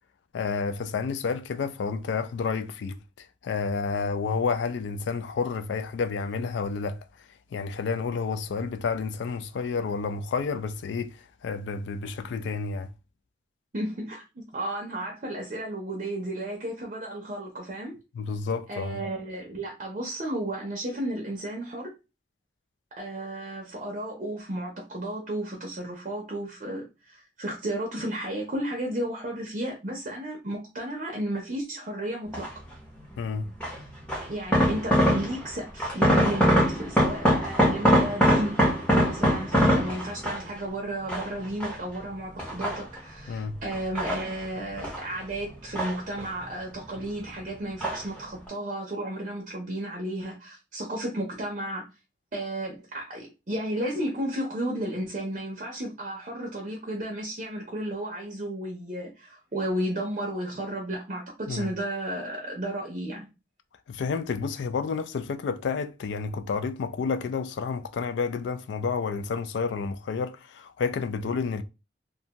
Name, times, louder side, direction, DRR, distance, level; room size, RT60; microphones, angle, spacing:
voice 1, 0.3-7.0 7.5-12.9 18.2-19.0 33.2-33.5 43.3-43.6 61.5-61.7 63.9-71.6, left 5 dB, 75° left, 0.3 m, -30 dB
voice 2, 13.7-18.0 18.7-21.9 23.0-32.5 33.8-33.9 34.2-38.6 39.1-51.8 52.3-63.3, right 1 dB, 40° right, 0.5 m, -33 dB
sound 1, 32.3-32.7 33.6-35.5 35.8-40.6 41.1-42.0 42.4-43.2 43.7-45.1 45.3-46.5 46.8-47.4 47.8-48.2 48.5-48.6, equal, 5° left, 0.7 m, -23 dB
2.6 x 2.2 x 2.8 m
head